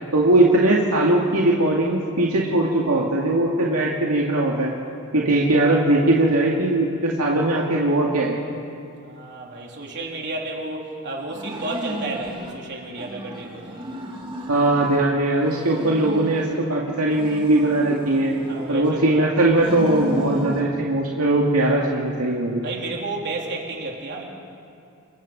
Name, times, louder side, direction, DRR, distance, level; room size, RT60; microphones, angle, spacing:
voice 1, 0.1-4.7 5.1-8.4 14.5-18.4 18.7-22.6, right 2 dB, 75° right, -3 dB, 2.3 m, -20 dB
voice 2, 9.0-13.8 18.4-19.5 22.6-24.2, right 2 dB, 50° right, -1 dB, 3.8 m, -32 dB
sound 1, 11.3-12.6 12.9-15.0 15.4-16.7 17.1-19.0 19.5-20.7, equal, 25° right, 2.9 m, -34 dB
29.0 x 23.0 x 5.3 m, 2.5 s
head